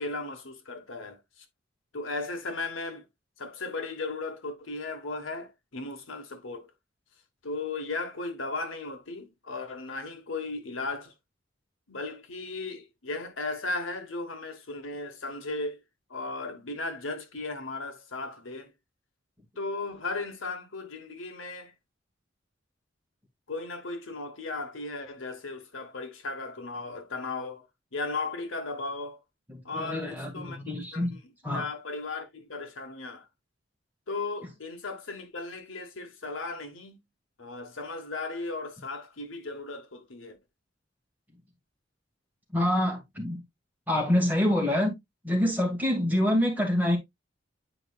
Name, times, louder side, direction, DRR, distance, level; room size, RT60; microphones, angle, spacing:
voice 1, 0.0-1.4 1.9-3.0 3.4-6.7 7.4-11.1 11.9-15.8 16.1-18.7 19.6-21.7 23.5-27.6 27.9-29.2 29.6-30.6 30.9-31.0 31.5-33.3 34.1-37.0 37.4-40.4, left 3 dB, 80° left, 1.3 m, -36 dB
voice 2, 29.5-31.2 31.4-31.7 42.5-43.5 43.9-44.9 45.2-47.0, left 1 dB, 10° right, 2.0 m, -26 dB
9.7 x 4.7 x 2.3 m
head